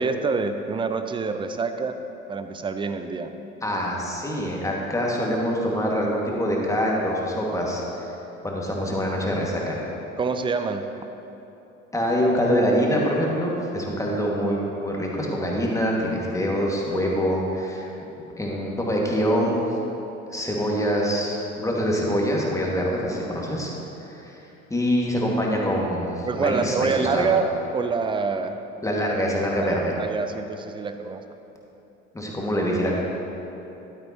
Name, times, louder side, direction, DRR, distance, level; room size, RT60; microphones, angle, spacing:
voice 1, 0.0-2.0 2.3-3.3 10.2-10.8 26.3-28.6 29.6-31.2, right 4 dB, 15° right, 8 dB, 0.4 m, -26 dB
voice 2, 3.6-8.1 8.4-9.8 11.9-17.9 18.4-19.7 20.3-23.7 24.1-24.4 24.7-27.3 28.8-29.9 32.1-33.0, equal, 10° left, -3 dB, 1.8 m, -25 dB
12.0 x 9.5 x 2.9 m, 3.0 s
figure-of-eight pair, 65°, 40 cm